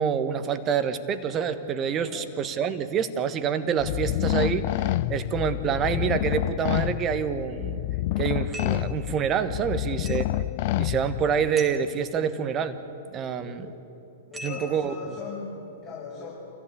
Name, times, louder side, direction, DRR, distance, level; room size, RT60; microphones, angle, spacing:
voice 1, 0.0-7.8 8.2-10.2 10.8-12.8 13.1-13.7 14.4-14.9, right 7 dB, 25° right, 10 dB, 1.4 m, -27 dB
sound 1, 3.8-11.5, left 15 dB, 45° left, 0.5 m, -28 dB
sound 2, 8.5-8.9 10.1-10.4 11.6-11.9 14.3-15.0, equal, 10° right, 2.2 m, -40 dB
voice 2, 13.4-13.7 14.3-16.3, left 4 dB, 30° left, -7 dB, 6.0 m, -39 dB
27.5 x 15.5 x 8.5 m, 2.8 s
figure-of-eight pair, 105°, 0 cm